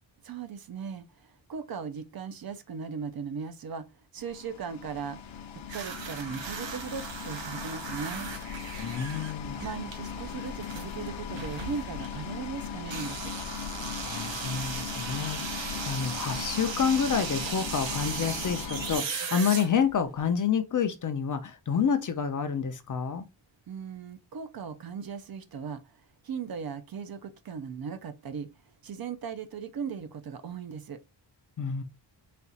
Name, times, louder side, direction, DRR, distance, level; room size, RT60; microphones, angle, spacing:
voice 1, 0.2-5.4 5.7-8.3 9.6-13.3 23.7-28.5 28.8-31.0, right 6 dB, 50° right, 0.6 m, -38 dB
sound 1, 4.2-19.0, left 7 dB, 80° left, 0.8 m, -38 dB
sound 2, 5.7-12.2 12.8-20.2, right 6 dB, 70° right, 0.9 m, -37 dB
voice 2, 8.8-9.6 14.0-23.2 31.6-31.8, left 7 dB, 45° left, 0.5 m, -28 dB
4.2 x 2.4 x 3.9 m
wide cardioid pair, 170°, 46 cm